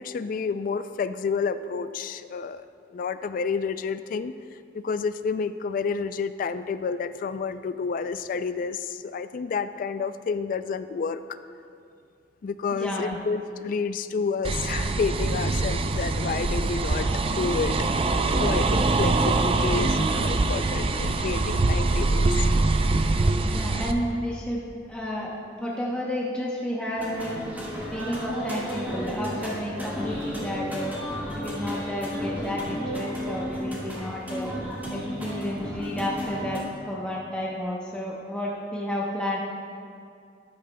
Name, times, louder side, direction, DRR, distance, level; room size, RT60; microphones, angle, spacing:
voice 1, 0.0-2.7 2.9-4.3 4.7-11.4 12.4-22.7, left 5 dB, 50° left, 12 dB, 0.3 m, -30 dB
voice 2, 12.7-13.2 23.4-24.6 24.9-27.3 27.9-30.9 31.3-34.5 34.9-36.6 36.9-39.4, equal, 5° left, -5 dB, 0.8 m, -31 dB
sound 1, 14.4-23.9, right 3 dB, 30° right, 0.4 m, -24 dB
sound 2, 27.0-36.6, equal, 10° right, 1.9 m, -33 dB
13.5 x 10.0 x 2.2 m, 2.4 s
head